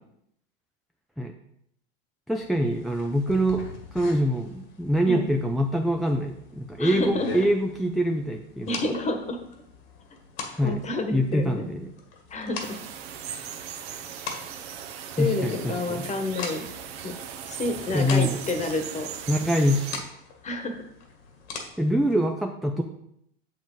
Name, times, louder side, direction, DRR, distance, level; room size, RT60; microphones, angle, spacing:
voice 1, 2.3-3.6 3.9-8.9 10.5-10.8 11.1-11.9 15.2-16.0 17.9-18.4 19.3-20.0 21.8-22.8, equal, ahead, 3 dB, 0.4 m, -24 dB
sound 1, 2.4-22.3, left 4 dB, 75° left, 1.9 m, -42 dB
voice 2, 6.8-7.3 8.7-9.4 10.6-11.7 12.3-12.8 15.2-16.7 17.0-17.1 17.5-19.1 19.5-19.7 20.4-20.8, left 2 dB, 20° left, 6 dB, 1.2 m, -29 dB
sound 2, 12.6-20.0, right 8 dB, 75° right, 1.1 m, -38 dB
7.3 x 7.3 x 3.9 m, 0.73 s
supercardioid pair, 120°, 31 cm